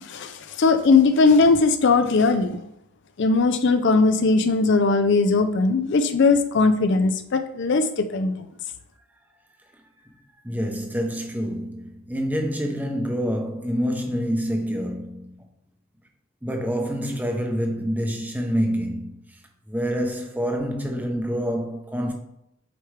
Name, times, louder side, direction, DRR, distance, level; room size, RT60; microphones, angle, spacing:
voice 1, 0.0-2.6 3.2-8.3, left 4 dB, 55° left, 0.4 m, -19 dB
voice 2, 10.4-15.5 16.4-19.2 19.7-22.1, equal, 10° right, 0.7 m, -27 dB
8.0 x 4.6 x 3.3 m
head